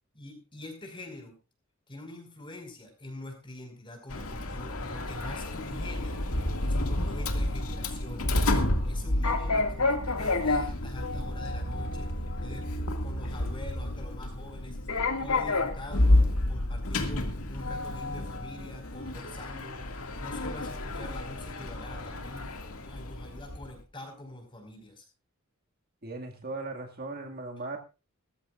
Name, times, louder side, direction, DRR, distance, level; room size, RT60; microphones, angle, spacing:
voice 1, 0.1-1.3 1.9-6.3 6.6-8.4 8.8-22.5 22.8-25.1, left 1 dB, 25° left, 4 dB, 5.1 m, -45 dB
Sliding door, 4.1-23.7, left 2 dB, 90° left, 2.1 m, -30 dB
voice 2, 26.0-27.8, right 2 dB, 45° right, 3 dB, 2.1 m, -38 dB
20.0 x 15.0 x 2.5 m, 0.30 s
head